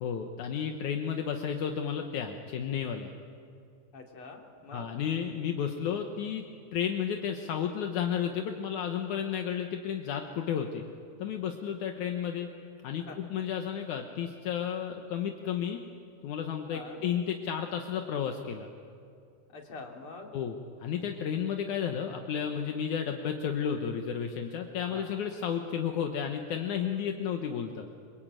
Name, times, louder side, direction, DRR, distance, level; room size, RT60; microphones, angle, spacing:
voice 1, 0.0-3.1 4.7-6.5 6.7-10.8 11.2-12.5 12.8-15.8 16.2-18.7 20.3-27.9, left 8 dB, 75° left, 4 dB, 2.6 m, -32 dB
voice 2, 3.9-4.9 11.9-12.0 13.1-13.2 16.7-17.0 19.5-20.3 24.9-25.1, left 3 dB, 45° left, 1 dB, 3.7 m, -45 dB
26.5 x 25.0 x 9.1 m, 2.5 s
omnidirectional pair, 3.6 m